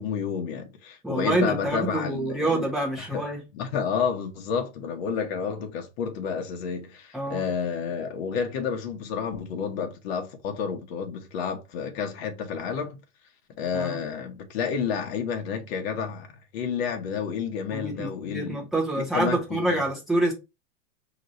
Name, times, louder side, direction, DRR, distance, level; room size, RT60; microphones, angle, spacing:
voice 1, 0.0-2.7 3.0-3.2 3.5-13.0 13.6-18.7 19.0-19.8, left 6 dB, 50° left, 1.1 m, -30 dB
voice 2, 1.0-3.4 7.1-7.4 13.7-14.0 17.7-20.3, right 2 dB, ahead, 0.9 m, -27 dB
4.8 x 3.0 x 2.5 m
supercardioid pair, 165°, 40 cm